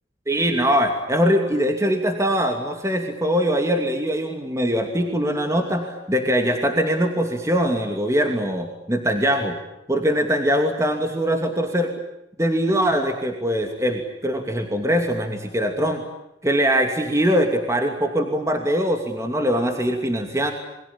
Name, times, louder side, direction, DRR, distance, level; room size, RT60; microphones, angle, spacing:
voice 1, 0.3-9.6 9.9-12.0 12.4-16.0 16.4-20.5, equal, 15° right, 4 dB, 2.7 m, -22 dB
29.0 x 22.5 x 8.8 m, 0.88 s
head